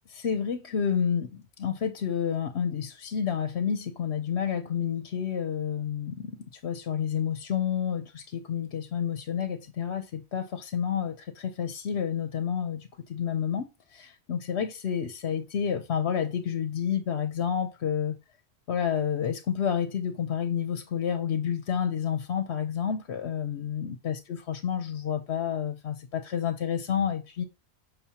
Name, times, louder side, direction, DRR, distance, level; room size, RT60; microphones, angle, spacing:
voice 1, 0.1-18.2 18.7-27.4, left 8 dB, 75° left, 1.0 m, -30 dB
6.9 x 5.6 x 2.8 m
omnidirectional pair, 1.1 m